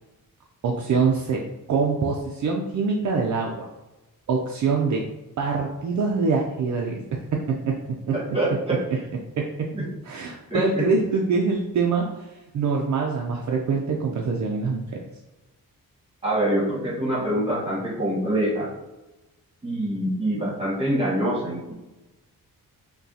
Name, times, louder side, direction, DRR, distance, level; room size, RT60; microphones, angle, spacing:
voice 1, 0.6-1.4 1.7-3.7 4.3-5.0 5.4-7.0 7.7-7.8 8.1-8.2 9.4-9.5 10.1-12.3 12.5-14.8, right 4 dB, 55° right, -1 dB, 0.4 m, -24 dB
voice 2, 8.1-9.0 9.7-9.9 10.5-10.9 16.2-18.7 19.6-21.7, right 1 dB, 15° right, -6 dB, 1.3 m, -25 dB
5.4 x 2.3 x 2.7 m, 1.0 s
wide cardioid pair, 180°, 35 cm